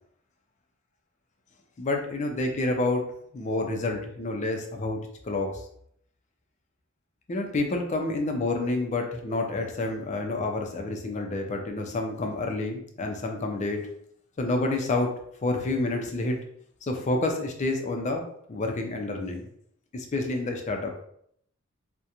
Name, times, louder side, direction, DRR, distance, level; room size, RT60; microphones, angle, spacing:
voice 1, 1.8-3.1 3.3-5.5 7.3-13.8 14.4-15.1 15.4-16.4 16.8-18.2 18.5-19.5 19.9-20.9, left 2 dB, 35° left, 3 dB, 0.4 m, -28 dB
2.4 x 2.1 x 2.8 m, 0.69 s
head